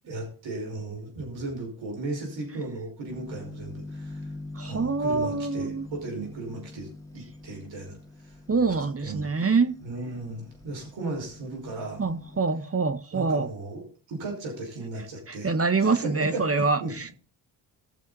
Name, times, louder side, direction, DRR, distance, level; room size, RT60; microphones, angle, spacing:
voice 1, 0.1-4.3 4.6-8.4 9.0-9.2 9.8-12.0 13.1-15.5 15.8-16.9, right 2 dB, 75° right, 5.6 m, -36 dB
sound 1, 3.1-12.4, left 2 dB, 5° left, 2.3 m, -44 dB
voice 2, 4.6-5.9 8.5-9.8 12.0-13.5 15.3-17.1, right 4 dB, 30° right, 1.2 m, -25 dB
18.5 x 7.1 x 4.1 m
supercardioid pair, 55°, 45 cm